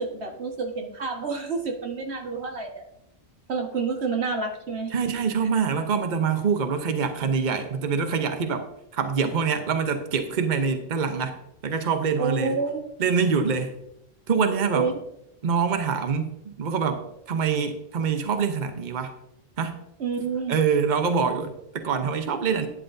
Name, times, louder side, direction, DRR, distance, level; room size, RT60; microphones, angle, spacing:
voice 1, 0.0-2.7 3.5-4.9 12.2-12.8 14.7-14.9 20.0-20.6, right 4 dB, 90° right, 3 dB, 1.7 m, -28 dB
voice 2, 4.9-11.4 11.6-12.6 13.0-13.7 14.3-14.9 15.4-19.1 19.6-19.8 20.5-22.7, right 6 dB, 50° right, 7 dB, 1.0 m, -25 dB
11.5 x 10.5 x 2.7 m, 0.81 s
omnidirectional pair, 1.1 m